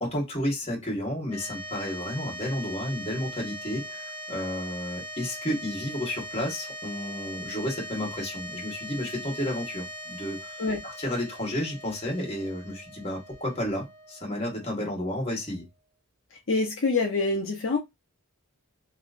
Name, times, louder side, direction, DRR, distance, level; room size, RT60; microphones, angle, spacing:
voice 1, 0.0-15.7, left 1 dB, 25° left, 1.5 m, -32 dB
sound 1, 1.2-15.7, equal, 10° left, 0.8 m, -41 dB
voice 2, 16.5-17.8, left 3 dB, 60° left, 0.8 m, -25 dB
3.0 x 3.0 x 2.5 m
head